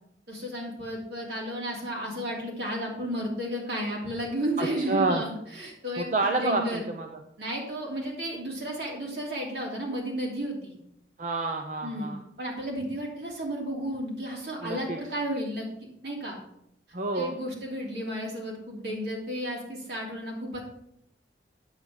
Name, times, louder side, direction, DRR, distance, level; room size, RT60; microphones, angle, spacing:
voice 1, 0.3-6.1 6.4-6.8 7.4-10.7 11.8-12.1 12.4-15.7 16.0-16.4 17.1-20.6, equal, 70° right, -2 dB, 2.9 m, -33 dB
voice 2, 4.6-5.2 6.0-7.2 11.2-12.2 14.6-15.1 16.9-17.4, right 2 dB, 45° right, 4 dB, 0.7 m, -29 dB
8.7 x 7.9 x 4.9 m, 0.75 s
head